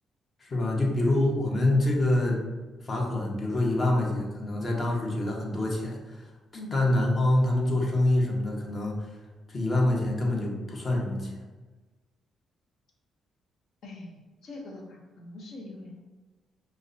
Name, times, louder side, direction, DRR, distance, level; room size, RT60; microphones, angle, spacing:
voice 1, 0.4-2.4 2.8-6.3 6.7-9.0 9.5-11.4, left 1 dB, 35° left, -1 dB, 0.8 m, -26 dB
voice 2, 13.8-16.1, left 2 dB, 70° left, 0 dB, 0.8 m, -43 dB
4.9 x 2.1 x 2.6 m, 1.2 s
cardioid pair, 90°, 0 cm